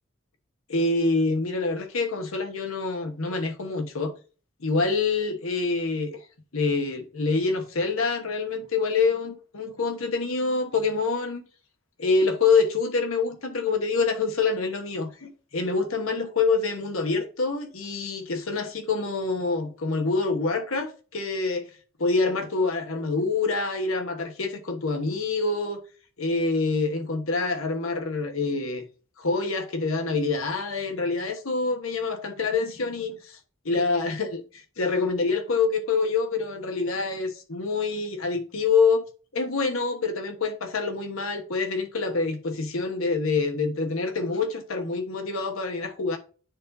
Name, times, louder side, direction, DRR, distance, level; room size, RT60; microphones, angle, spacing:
voice 1, 0.7-4.1 4.6-6.2 6.5-11.4 12.0-21.7 22.0-25.8 26.2-28.8 29.2-33.4 33.6-39.0 39.3-46.2, left 4 dB, 85° left, 1.2 m, -26 dB
9.5 x 4.0 x 2.6 m
head